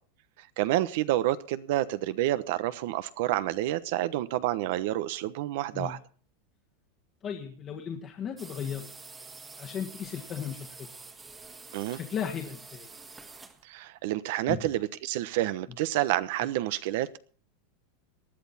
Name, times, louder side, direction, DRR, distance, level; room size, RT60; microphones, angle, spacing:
voice 1, 0.4-6.0 11.7-12.0 13.6-17.2, right 14 dB, 65° right, 13 dB, 1.0 m, -29 dB
voice 2, 7.2-8.9 9.6-11.1 11.9-12.9 14.5-14.7, left 8 dB, 30° left, 1 dB, 1.5 m, -36 dB
sound 1, 8.4-13.6, right 4 dB, 15° right, 1.6 m, -47 dB
19.0 x 11.5 x 4.2 m, 0.43 s
supercardioid pair, 145°, 0 cm